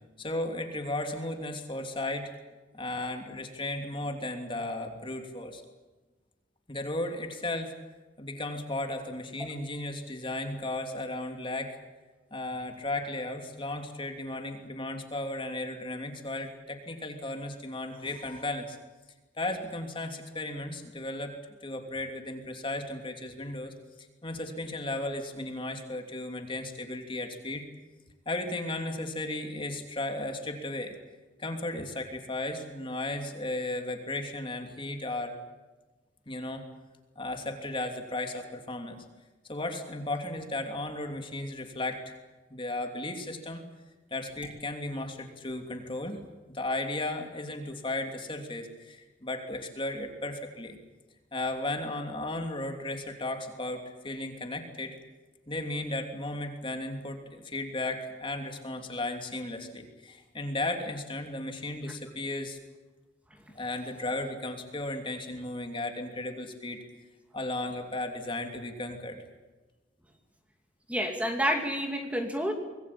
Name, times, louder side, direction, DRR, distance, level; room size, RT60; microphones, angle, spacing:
voice 1, 0.2-2.3 2.7-5.6 6.7-7.7 8.2-11.7 12.3-18.8 19.4-21.3 21.6-23.7 24.2-27.6 28.3-31.0 31.4-35.3 36.3-36.6 37.2-39.0 39.5-42.1 42.5-43.6 44.1-50.8 51.3-55.0 55.5-62.6 63.5-66.8 67.3-69.2, left 2 dB, 30° left, 5 dB, 3.0 m, -35 dB
voice 2, 70.9-72.5, equal, 5° right, 4 dB, 2.5 m, -29 dB
25.5 x 20.5 x 8.7 m, 1.2 s
head